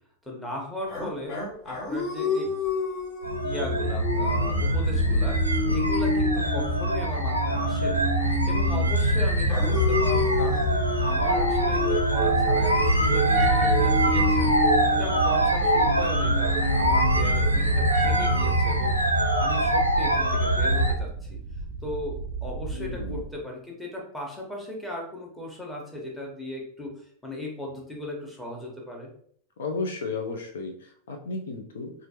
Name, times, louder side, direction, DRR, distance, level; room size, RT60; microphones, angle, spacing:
voice 1, 0.2-1.4 1.6-2.5 3.4-14.5 14.9-19.0 19.4-21.4 21.8-29.1, left 1 dB, 5° left, -2 dB, 1.0 m, -37 dB
sound 1, 0.9-8.9 9.5-17.6, left 3 dB, 45° left, 1.0 m, -31 dB
sound 2, 3.2-20.9, equal, 90° right, 0.5 m, -24 dB
sound 3, 10.2-23.4, right 5 dB, 35° right, 0.4 m, -29 dB
voice 2, 22.7-23.2 29.6-31.9, left 3 dB, 60° left, 3 dB, 0.5 m, -33 dB
4.2 x 2.5 x 2.8 m, 0.62 s
figure-of-eight pair, 90°, 0 cm